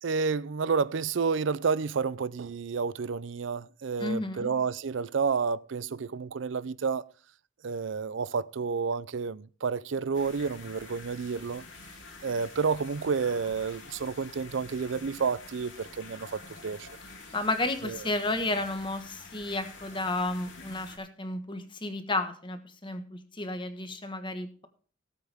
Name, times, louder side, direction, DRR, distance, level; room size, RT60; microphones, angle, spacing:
voice 1, 0.0-7.1 7.6-11.6 12.2-16.9 17.8-18.0, right 5 dB, 70° right, 0.5 m, -30 dB
voice 2, 4.0-4.5 17.3-24.7, left 2 dB, 25° left, 1.4 m, -32 dB
sound 1, 10.1-21.0, left 3 dB, 75° left, 2.9 m, -48 dB
18.0 x 8.2 x 3.5 m
head